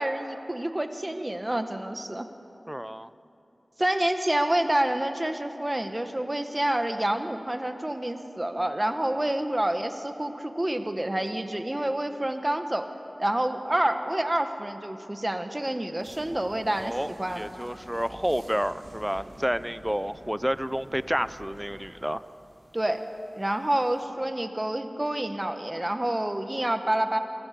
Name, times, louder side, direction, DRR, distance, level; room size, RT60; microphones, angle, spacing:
voice 1, 0.0-2.3 3.8-12.9 13.2-17.4 22.7-23.0 23.4-27.2, right 1 dB, 25° right, 6 dB, 1.7 m, -28 dB
voice 2, 2.7-3.1 16.8-22.2, equal, 10° right, 14 dB, 0.7 m, -30 dB
sound 1, 16.0-24.0, right 1 dB, 70° right, 5.6 m, -49 dB
29.5 x 24.0 x 6.9 m, 2.9 s
wide cardioid pair, 70°, 0 cm